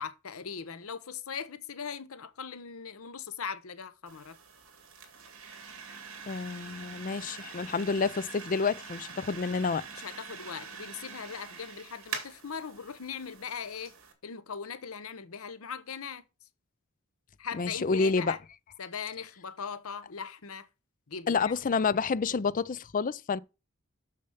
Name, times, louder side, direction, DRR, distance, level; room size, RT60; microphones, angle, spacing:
voice 1, 0.0-4.4 9.9-13.9 14.2-16.3 17.4-18.4 18.8-20.7 21.1-21.5, left 6 dB, 70° left, 0.8 m, -40 dB
sound 1, 4.1-14.1, right 5 dB, 65° right, 2.5 m, -45 dB
voice 2, 6.3-9.8 17.5-18.4 21.3-23.4, left 4 dB, 40° left, 0.4 m, -29 dB
6.8 x 6.6 x 5.5 m
head